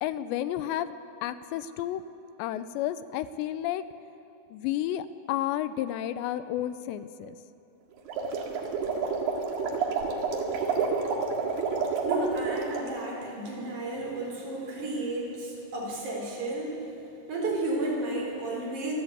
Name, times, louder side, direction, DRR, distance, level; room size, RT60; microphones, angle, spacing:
voice 1, 0.0-0.9 1.2-2.0 2.4-3.9 4.5-7.4, left 12 dB, 85° left, 13 dB, 2.9 m, -31 dB
sound 1, 8.0-12.9, right 5 dB, 70° right, 3.7 m, -29 dB
voice 2, 12.0-16.7 17.3-18.9, right 2 dB, 45° right, -2 dB, 5.3 m, -32 dB
25.0 x 13.5 x 8.2 m, 2.9 s
omnidirectional pair, 5.0 m